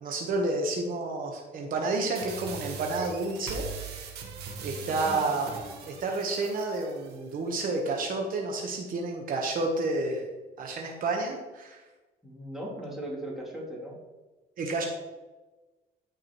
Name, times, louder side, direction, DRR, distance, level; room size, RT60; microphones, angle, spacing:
voice 1, 0.0-4.1 4.6-5.5 5.9-10.2 10.6-11.8 14.6-14.8, right 3 dB, 55° right, 1 dB, 1.2 m, -30 dB
sound 1, 2.1-7.2, right 4 dB, 70° right, 1.5 m, -40 dB
voice 2, 4.9-5.4 12.2-14.0, right 1 dB, ahead, -5 dB, 3.0 m, -38 dB
14.0 x 4.8 x 3.1 m, 1.2 s
cardioid pair, 110°, 17 cm